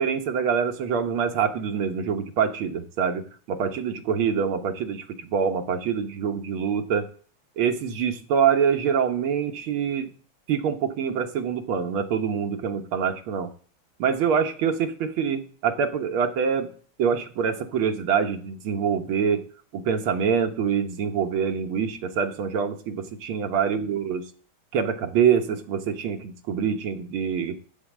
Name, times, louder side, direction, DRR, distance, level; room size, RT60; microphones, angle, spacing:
voice 1, 0.0-7.1 7.6-10.1 10.5-13.5 14.0-16.7 17.0-19.4 19.7-24.2 24.7-27.6, right 7 dB, 85° right, 6 dB, 1.8 m, -25 dB
11.5 x 4.6 x 7.2 m, 0.43 s
omnidirectional pair, 2.2 m